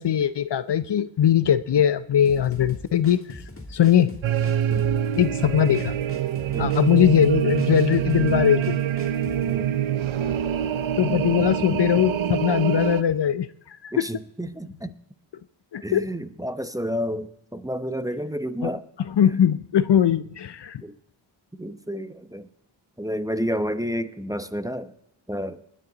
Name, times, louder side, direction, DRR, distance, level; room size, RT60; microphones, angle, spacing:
voice 1, 0.0-3.4 3.7-4.2 5.2-6.0 6.6-8.8 11.0-13.5 13.8-14.0 15.7-16.0 18.6-18.7 19.1-20.8, left 9 dB, 60° left, 13 dB, 0.7 m, -20 dB
sound 1, 2.2-9.5, left 1 dB, 25° left, 2.9 m, -41 dB
sound 2, 4.2-13.0, right 10 dB, 70° right, 0.8 m, -25 dB
voice 2, 13.9-14.9 15.8-18.9 19.2-19.3 20.8-20.9 21.6-22.5 23.0-24.9 25.3-25.6, equal, 5° right, 11 dB, 0.9 m, -30 dB
20.0 x 10.0 x 3.9 m, 0.75 s
cardioid pair, 45°, 48 cm